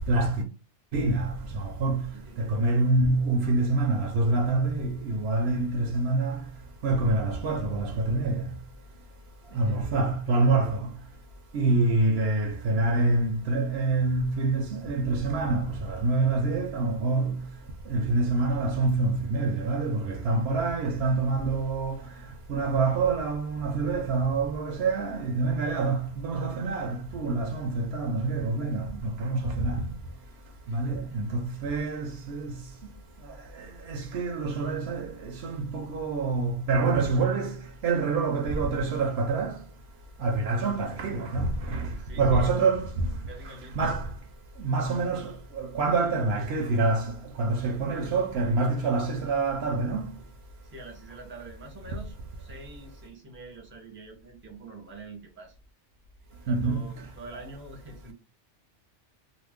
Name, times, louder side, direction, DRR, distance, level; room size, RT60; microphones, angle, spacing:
voice 1, 0.1-0.4 0.9-2.1 2.4-6.4 6.8-8.5 9.5-10.9 11.5-17.4 17.9-22.0 22.5-29.8 30.7-32.6 33.6-39.6 40.2-41.9 42.2-42.9 43.7-44.1 44.6-50.1 56.5-56.9, right 3 dB, 65° right, 0.8 m, -26 dB
voice 2, 2.1-2.5 9.5-10.0 30.6-31.2 41.9-42.5 43.3-43.9 50.6-55.6 56.4-58.1, right 3 dB, 15° right, 0.6 m, -46 dB
2.5 x 2.1 x 3.4 m
omnidirectional pair, 1.2 m